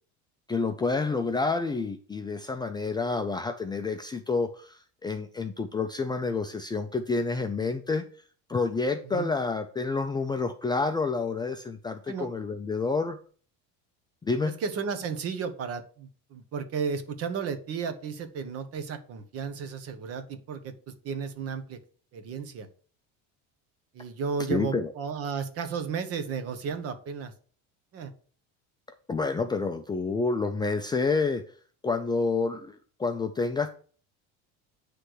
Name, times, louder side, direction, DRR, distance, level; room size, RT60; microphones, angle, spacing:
voice 1, 0.5-8.0 8.5-13.2 14.2-14.5 24.5-24.9 29.1-31.4 31.8-33.7, left 4 dB, 15° left, 6 dB, 0.4 m, -29 dB
voice 2, 14.4-21.8 22.1-22.7 23.9-27.3 27.9-28.1, right 6 dB, 45° right, 9 dB, 1.2 m, -33 dB
9.7 x 3.4 x 6.3 m, 0.44 s
cardioid pair, 140°, 32 cm